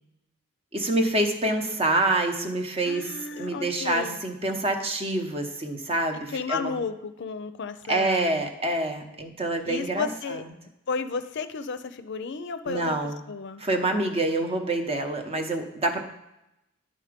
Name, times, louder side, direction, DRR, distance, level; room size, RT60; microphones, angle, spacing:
voice 1, 0.7-6.7 7.9-10.4 12.7-13.2 13.6-16.0, right 2 dB, 30° right, 5 dB, 0.9 m, -27 dB
voice 2, 2.9-4.2 6.3-8.5 9.6-10.4 10.9-12.9 13.3-13.6, left 5 dB, 60° left, 10 dB, 0.5 m, -33 dB
11.0 x 3.9 x 5.1 m, 0.89 s
head